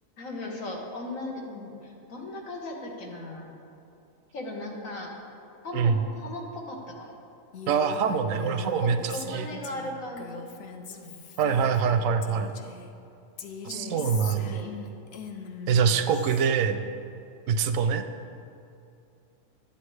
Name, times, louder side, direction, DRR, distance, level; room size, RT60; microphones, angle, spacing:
voice 1, 0.2-3.5 4.3-5.1 5.6-7.1 8.3-8.5 8.8-10.4 10.9-11.1 13.7-14.7, left 1 dB, 80° left, -1 dB, 1.7 m, -37 dB
Female speech woman speaking, 7.5-12.9 13.4-16.5, left 6 dB, 60° left, 0.8 m, -41 dB
voice 2, 7.7-9.4 11.4-12.6 13.6-14.6 15.7-16.8 17.5-18.1, right 6 dB, 80° right, 9 dB, 1.0 m, -24 dB
11.5 x 8.5 x 3.2 m, 2.7 s
omnidirectional pair, 1.4 m